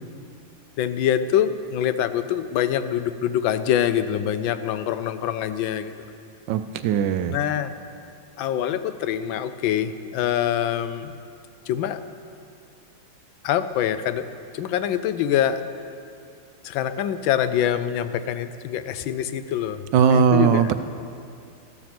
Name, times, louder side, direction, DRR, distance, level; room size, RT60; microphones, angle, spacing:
voice 1, 0.8-6.1 7.3-7.7 8.4-11.1 11.7-12.0 13.4-14.3 14.5-15.6 16.6-19.8 20.1-20.7, left 10 dB, 80° left, 12 dB, 1.4 m, -25 dB
voice 2, 6.5-7.4 19.9-20.7, right 7 dB, 75° right, 10 dB, 1.2 m, -19 dB
14.0 x 12.5 x 6.0 m, 2.5 s
omnidirectional pair, 2.1 m